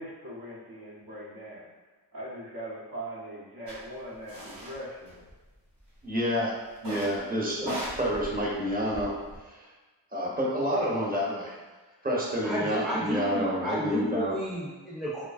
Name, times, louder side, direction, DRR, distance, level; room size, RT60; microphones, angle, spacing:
voice 1, 0.0-1.7 2.1-5.2, right 1 dB, 60° right, -5 dB, 0.8 m, -41 dB
sound 1, 3.7-3.8 4.3-4.7 5.1-5.8 6.8-7.2 7.6-9.4, right 1 dB, 80° right, 1.3 m, -38 dB
voice 2, 6.0-6.6 6.8-9.2 9.5-9.7 10.1-11.5 12.0-14.4, equal, 20° right, -5 dB, 0.9 m, -29 dB
voice 3, 12.4-15.3, equal, ahead, -5 dB, 0.5 m, -32 dB
3.4 x 2.1 x 2.3 m, 1.2 s
cardioid pair, 55°, 42 cm